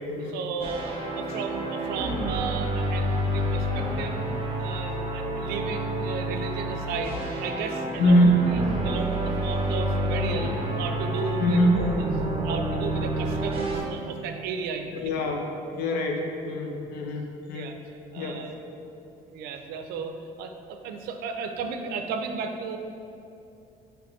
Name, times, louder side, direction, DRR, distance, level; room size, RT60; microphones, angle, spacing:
voice 1, 0.2-4.2 4.6-8.2 8.5-12.0 12.4-15.0 17.5-17.7 18.1-18.5 19.3-22.8, right 5 dB, 85° right, 6 dB, 0.4 m, -34 dB
sound 1, 0.6-13.8, right 1 dB, 35° right, 0.6 m, -29 dB
voice 2, 8.0-8.6 11.4-12.0 14.9-17.7 18.2-18.5, equal, 80° left, 2 dB, 0.6 m, -24 dB
5.0 x 3.1 x 3.1 m, 2.7 s
cardioid pair, 120°, 16 cm